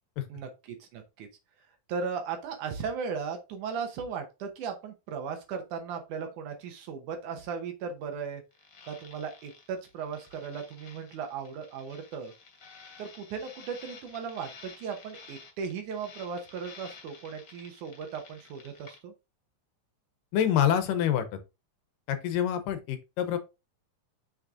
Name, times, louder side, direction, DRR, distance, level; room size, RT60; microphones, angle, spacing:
voice 1, 0.3-1.3 1.9-8.4 8.8-12.3 13.0-19.1, right 6 dB, 70° right, 2.2 m, -37 dB
sound 1, 8.5-19.0, left 5 dB, 35° left, 3.3 m, -52 dB
voice 2, 20.3-21.3 22.1-23.4, left 10 dB, 75° left, 2.4 m, -26 dB
6.3 x 6.2 x 2.5 m
omnidirectional pair, 4.0 m